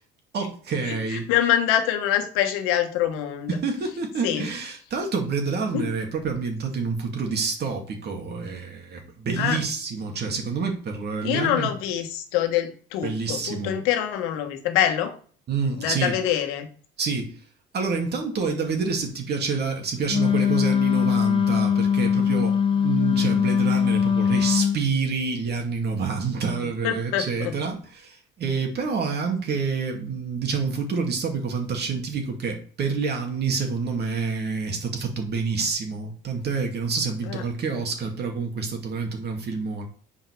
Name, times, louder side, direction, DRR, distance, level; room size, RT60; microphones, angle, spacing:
voice 1, 0.3-1.3 3.5-11.7 13.0-13.8 15.5-16.1 17.0-17.3 17.7-39.9, right 5 dB, 50° right, 3 dB, 2.4 m, -28 dB
voice 2, 0.8-3.6 4.2-4.5 5.7-5.9 9.4-9.6 11.2-15.1 15.8-16.7 26.8-27.5 37.3-37.4, left 11 dB, 85° left, 7 dB, 1.3 m, -25 dB
Wind instrument woodwind instrument, 20.1-24.8, left 7 dB, 25° left, 1.2 m, -21 dB
7.4 x 5.1 x 4.8 m, 0.44 s
supercardioid pair, 90°, 21 cm